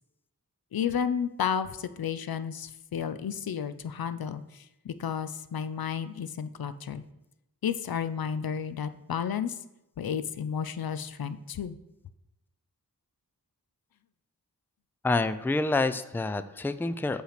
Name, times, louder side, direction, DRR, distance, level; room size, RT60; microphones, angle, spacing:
voice 1, 0.7-7.0 7.6-9.6 10.0-11.8, left 7 dB, 75° left, 13 dB, 0.5 m, -32 dB
voice 2, 15.0-17.2, left 3 dB, 5° left, 13 dB, 0.4 m, -27 dB
6.6 x 5.6 x 5.8 m, 0.93 s
wide cardioid pair, 70°, 36 cm